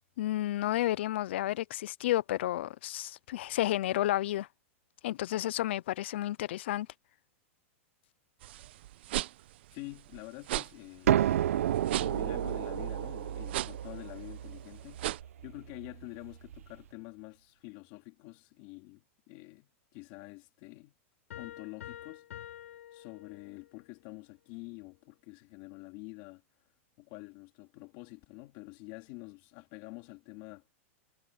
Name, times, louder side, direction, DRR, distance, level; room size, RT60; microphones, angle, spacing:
voice 1, 0.2-4.5 5.0-6.9, left 14 dB, 55° left, 0.4 m, -31 dB
sound 1, 8.4-15.2, right 15 dB, 50° right, 0.8 m, -38 dB
voice 2, 9.7-11.4 12.0-15.1 15.4-20.9 21.3-22.3 22.9-26.4 27.0-30.6, left 23 dB, 35° left, 2.6 m, -47 dB
sound 2, 11.1-16.7, right 11 dB, 85° right, 0.7 m, -31 dB
Piano, 21.3-23.8, left 11 dB, 80° left, 7.8 m, -47 dB
supercardioid pair, 175°, 7 cm